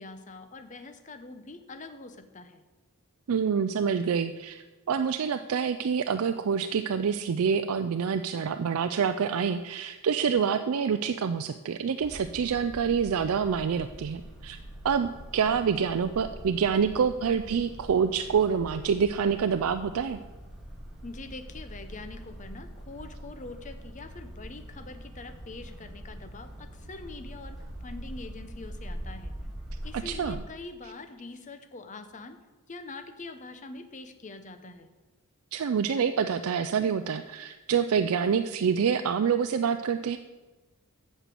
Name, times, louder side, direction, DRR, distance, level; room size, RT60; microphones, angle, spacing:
voice 1, 0.0-2.6 21.0-27.6 27.8-29.3 29.8-32.4 32.7-34.9, left 3 dB, 35° left, 9 dB, 0.8 m, -44 dB
voice 2, 3.3-14.6 14.8-20.2 29.9-30.4 35.5-40.2, right 6 dB, 70° right, 9 dB, 0.4 m, -27 dB
sound 1, 12.0-30.3, right 1 dB, ahead, 1.9 m, -43 dB
8.0 x 6.6 x 7.6 m, 1.2 s
head